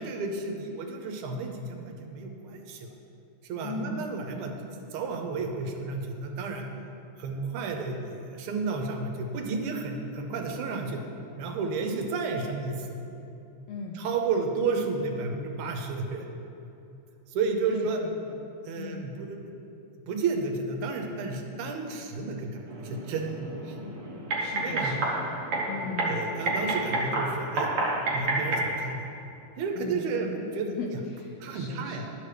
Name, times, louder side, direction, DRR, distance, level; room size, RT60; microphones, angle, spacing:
voice 1, 0.0-2.9 3.4-4.5 4.9-6.7 7.2-11.0 11.4-12.9 14.0-16.3 17.3-18.0 18.6-19.4 20.1-23.8 24.6-25.0 26.1-27.7 28.1-29.0 29.6-30.7 31.4-32.1, right 4 dB, 80° right, 4 dB, 2.1 m, -32 dB
voice 2, 3.6-4.1 13.7-14.0 17.7-18.4 18.8-19.1 24.4-25.4 25.7-26.2 29.7-30.3 30.6-32.1, left 4 dB, 80° left, 0 dB, 1.5 m, -38 dB
sound 1, 22.7-28.7, right 2 dB, 55° right, 1.8 m, -30 dB
11.0 x 7.0 x 3.3 m, 2.8 s
omnidirectional pair, 3.4 m